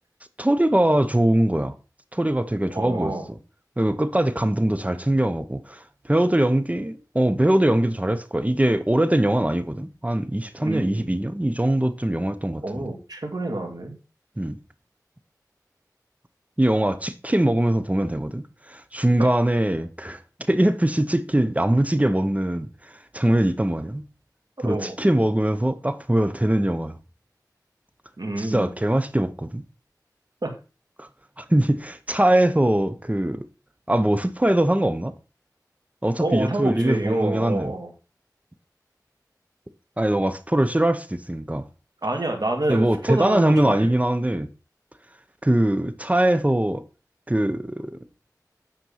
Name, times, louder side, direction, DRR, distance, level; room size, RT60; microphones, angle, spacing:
voice 1, 0.4-1.7 2.1-3.4 3.8-12.9 14.4-14.6 16.6-20.2 20.5-24.0 24.6-27.0 28.4-29.6 31.0-31.1 31.4-33.5 33.9-35.1 36.0-37.7 40.0-41.7 42.7-44.5 45.4-46.8 47.3-48.0, right 1 dB, 20° right, 0.9 m, -22 dB
voice 2, 2.7-3.3 10.6-11.1 12.6-14.0 19.2-19.3 24.6-25.0 28.2-28.7 30.4-30.5 36.2-37.9 42.0-43.9, right 2 dB, 70° right, 2.5 m, -27 dB
9.3 x 4.4 x 5.6 m
wide cardioid pair, 45°, 7 cm